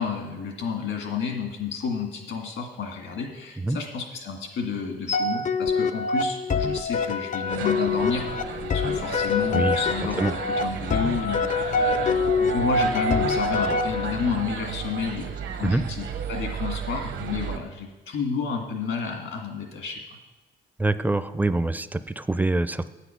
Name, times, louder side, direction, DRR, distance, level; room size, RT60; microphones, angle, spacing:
voice 1, 0.0-20.0, left 6 dB, 75° left, 3 dB, 2.0 m, -31 dB
sound 1, 5.1-14.4, left 4 dB, 40° left, 0.5 m, -25 dB
sound 2, 7.5-17.6, right 7 dB, 70° right, 1.0 m, -33 dB
voice 2, 9.5-9.8 10.2-10.3 15.6-15.8 20.8-22.9, right 2 dB, 10° right, 13 dB, 0.5 m, -25 dB
8.4 x 8.3 x 5.7 m, 1.1 s
cardioid pair, 90°, 20 cm